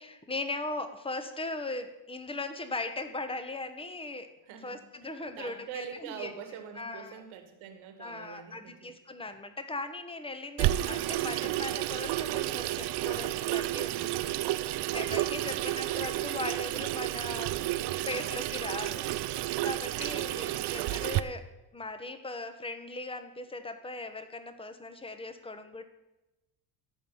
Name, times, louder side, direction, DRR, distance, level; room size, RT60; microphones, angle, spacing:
voice 1, 0.0-4.3 4.6-6.3 6.8-7.2 8.0-17.6 18.1-19.0 19.6-21.5 21.7-25.8, left 2 dB, 10° left, 8 dB, 1.2 m, -39 dB
voice 2, 4.4-9.0 15.4-15.7 20.0-20.5, right 8 dB, 75° right, 6 dB, 1.8 m, -45 dB
Water tap faucet / Sink (filling or washing), 10.6-21.2, right 15 dB, 55° right, 0.6 m, -31 dB
13.5 x 4.9 x 5.6 m, 0.97 s
supercardioid pair, 75°, 49 cm